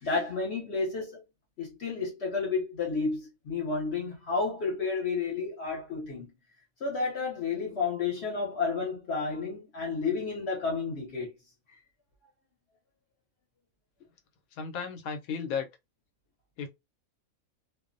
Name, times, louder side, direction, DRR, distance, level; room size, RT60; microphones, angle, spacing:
voice 1, 0.0-1.2 1.6-6.3 6.8-11.3, left 4 dB, 55° left, 0.9 m, -31 dB
voice 2, 14.6-15.7 16.6-16.7, left 6 dB, 85° left, 1.0 m, -34 dB
2.5 x 2.0 x 2.4 m
omnidirectional pair, 1.5 m